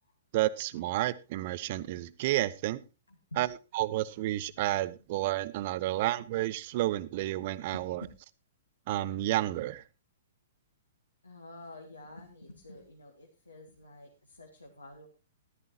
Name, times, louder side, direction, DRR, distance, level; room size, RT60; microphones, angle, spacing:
voice 1, 0.3-2.8 3.4-3.5 3.7-8.0 8.9-9.8, right 15 dB, 45° right, 15 dB, 0.7 m, -30 dB
voice 2, 3.1-3.5 4.5-4.7 4.9-5.0 7.5-8.1 11.2-15.1, left 2 dB, 85° left, 1 dB, 2.1 m, -49 dB
14.0 x 12.5 x 2.9 m, 0.29 s
figure-of-eight pair, 115°, 0 cm